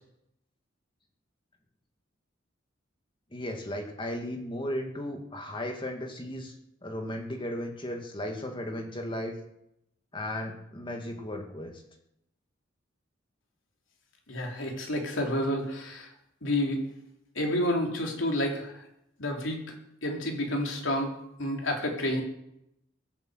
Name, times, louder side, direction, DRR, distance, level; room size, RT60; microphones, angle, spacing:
voice 1, 3.3-6.5 6.8-9.4 10.1-11.7, left 1 dB, 25° left, 3 dB, 2.2 m, -35 dB
voice 2, 14.3-16.1 16.4-16.8 17.4-18.7 19.2-19.6 20.0-22.2, left 1 dB, 85° left, 1 dB, 3.7 m, -29 dB
18.5 x 8.8 x 8.0 m, 0.81 s
head